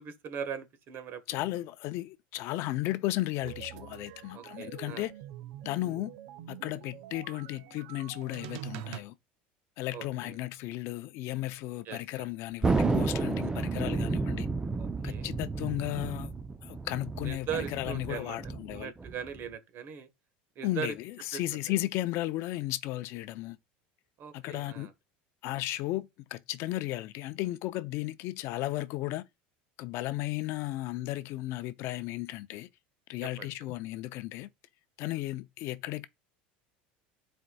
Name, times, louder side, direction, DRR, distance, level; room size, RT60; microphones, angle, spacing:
voice 1, 0.0-1.2 4.3-5.1 9.9-10.4 11.8-12.3 14.8-15.3 17.2-18.4 18.7-20.1 20.5-20.9 21.3-21.4 24.2-24.9 33.4-33.5, right 8 dB, 50° right, 1.2 m, -39 dB
voice 2, 1.3-5.1 5.6-6.1 6.5-9.1 9.8-14.5 15.0-16.3 16.6-18.9 20.6-23.6 24.3-24.9 25.4-29.2 29.8-32.7 33.1-34.5 35.0-36.1, left 16 dB, 60° left, 0.5 m, -34 dB
sound 1, 3.4-9.0, right 13 dB, 75° right, 0.7 m, -45 dB
Thunder, 12.6-19.5, right 3 dB, 15° right, 0.6 m, -31 dB
11.0 x 4.4 x 2.3 m
supercardioid pair, 110°, 5 cm